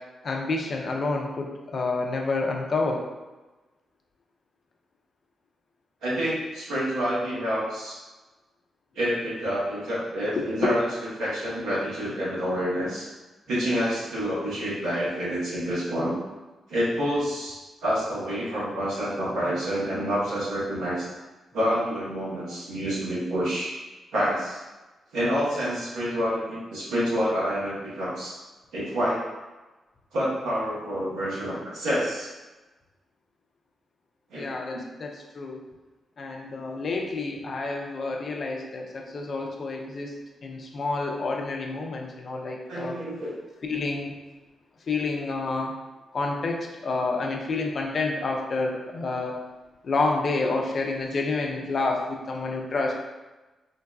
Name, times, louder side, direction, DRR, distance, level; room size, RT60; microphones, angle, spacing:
voice 1, 0.2-3.0 10.4-10.7 34.3-35.6 36.2-40.1 40.4-42.9 43.6-44.1 44.9-45.7 46.1-49.4 49.8-52.9, left 3 dB, 55° left, 1 dB, 0.5 m, -29 dB
voice 2, 6.0-8.0 8.9-13.1 13.5-16.2 16.7-21.1 21.5-23.7 24.1-24.6 25.1-28.3 28.7-29.2 30.1-32.3 34.3-34.4 42.7-43.3 50.4-50.5, equal, 85° right, -9 dB, 1.2 m, -28 dB
3.8 x 2.2 x 2.5 m, 1.1 s
supercardioid pair, 45°, 0 cm